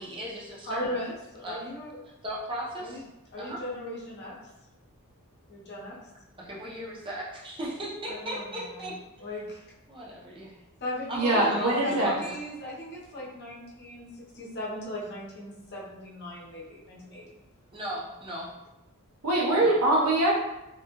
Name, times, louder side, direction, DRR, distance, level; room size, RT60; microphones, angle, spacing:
voice 1, 0.0-0.8 1.4-1.7 2.2-3.0 3.4-3.6 6.4-8.9 9.9-10.6 11.1-12.4 17.7-18.5 19.6-19.7, equal, 25° right, -4 dB, 0.7 m, -36 dB
voice 2, 0.7-2.0 2.8-3.0 3.3-4.5 5.5-6.0 8.1-8.9 9.2-9.6 10.8-17.2, left 1 dB, 50° left, -5 dB, 0.8 m, -38 dB
voice 3, 11.1-12.1 19.2-20.4, right 2 dB, 85° right, -3 dB, 0.9 m, -23 dB
3.5 x 2.2 x 2.9 m, 0.94 s
head